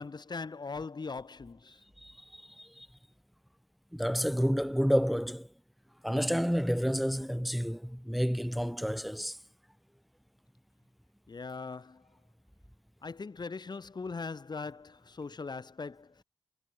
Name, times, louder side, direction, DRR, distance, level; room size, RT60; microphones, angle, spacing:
voice 1, 0.0-1.8 11.3-12.1 13.0-16.2, left 4 dB, 45° left, 2.4 m, -40 dB
voice 2, 2.0-2.9 3.9-5.5 6.0-9.4, equal, ahead, 3.4 m, -30 dB
cardioid pair, 55°, 10 cm